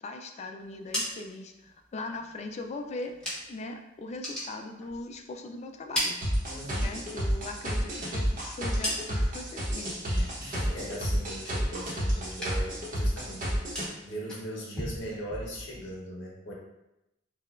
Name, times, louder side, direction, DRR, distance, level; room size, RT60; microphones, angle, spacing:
voice 1, 0.0-3.1 3.5-6.2 6.8-10.4, left 2 dB, 35° left, 5 dB, 0.3 m, -40 dB
sound 1, 0.6-3.7 4.0-5.4 5.7-7.0 7.3-9.5 9.8-10.3 10.6-12.0 12.2-12.8 13.1-16.0, equal, 5° left, 1.0 m, -38 dB
sound 2, 6.2-13.9, equal, 45° right, 0.9 m, -30 dB
voice 2, 6.5-6.9 10.4-16.5, right 1 dB, 65° left, -3 dB, 0.9 m, -40 dB
4.6 x 2.3 x 2.4 m, 0.90 s
head